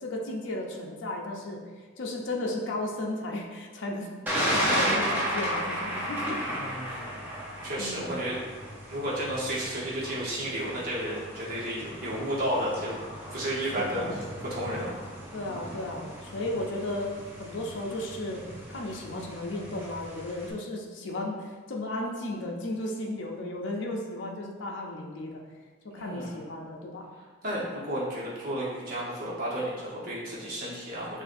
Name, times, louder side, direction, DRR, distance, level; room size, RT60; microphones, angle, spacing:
voice 1, 0.0-4.1 4.5-6.4 6.8-7.2 7.8-8.1 13.6-14.2 15.3-18.4 18.7-25.4 25.8-27.1, left 1 dB, 70° left, 0 dB, 0.5 m, -34 dB
Thunder, 4.3-20.5, equal, 10° right, 0.6 m, -34 dB
voice 2, 6.5-7.2 7.6-8.4 8.9-12.9 13.3-14.2 14.5-15.0 26.0-26.4 27.4-31.2, right 1 dB, 50° right, -7 dB, 1.1 m, -32 dB
6.3 x 2.5 x 2.6 m, 1.4 s
head